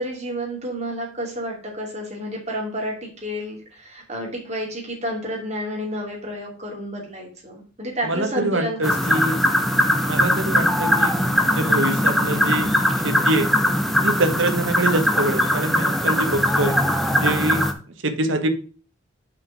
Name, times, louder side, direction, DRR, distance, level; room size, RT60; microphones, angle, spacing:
voice 1, 0.0-9.4, equal, 35° right, -2 dB, 2.8 m, -30 dB
voice 2, 8.0-9.4 10.1-11.2 11.4-12.7 13.0-13.5 14.0-16.7 17.1-17.6 18.0-18.5, right 2 dB, 70° right, 7 dB, 1.3 m, -24 dB
sound 1, 8.8-17.7, equal, ahead, 0.8 m, -20 dB
5.8 x 5.0 x 6.0 m, 0.38 s
head